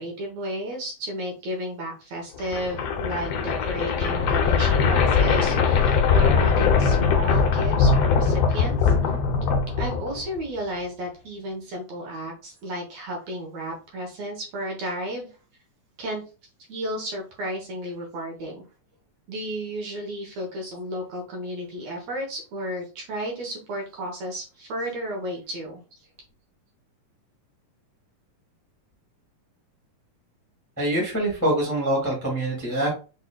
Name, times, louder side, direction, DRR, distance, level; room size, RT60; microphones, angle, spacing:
voice 1, 0.0-8.9 9.8-15.3 16.0-16.2 16.7-18.6 19.3-25.8, equal, 65° right, 0 dB, 2.1 m, -33 dB
sound 1, 2.4-10.4, left 5 dB, 75° left, 1.4 m, -21 dB
voice 2, 30.8-32.9, right 1 dB, 5° left, -4 dB, 1.2 m, -24 dB
5.8 x 4.0 x 2.3 m, 0.33 s
omnidirectional pair, 3.7 m